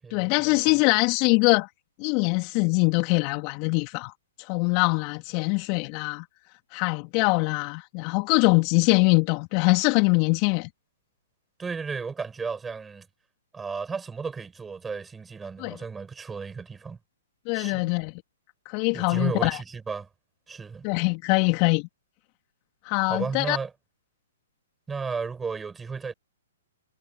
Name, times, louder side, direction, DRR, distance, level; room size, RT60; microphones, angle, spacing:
voice 1, 0.1-1.7 2.0-4.1 4.4-6.3 6.7-10.7 15.6-15.8 17.4-18.1 18.6-19.6 20.8-21.9 22.8-23.6, left 32 dB, 35° left, 3.4 m, -23 dB
voice 2, 11.6-13.1 13.5-17.0 17.5-17.8 18.9-20.1 20.5-20.9 23.1-23.7 24.9-26.1, right 5 dB, 10° right, 7.8 m, -33 dB
figure-of-eight pair, 120°, 0 cm